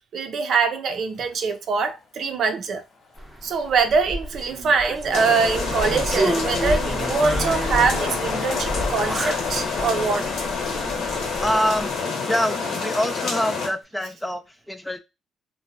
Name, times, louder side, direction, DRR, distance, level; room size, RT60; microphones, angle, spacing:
voice 1, 0.1-2.8 3.4-10.3, right 5 dB, 65° right, 0.5 m, -23 dB
Train, 1.0-2.2 2.7-3.7 4.2-12.9 13.2-13.3, left 4 dB, 55° left, 0.6 m, -39 dB
sound 1, 3.2-12.0, right 1 dB, 10° right, 0.7 m, -30 dB
sound 2, 5.1-13.7, left 4 dB, 75° left, 1.0 m, -27 dB
voice 2, 11.4-11.9 12.3-15.0, equal, 10° left, 0.3 m, -25 dB
2.8 x 2.1 x 2.8 m
cardioid pair, 90°, 0 cm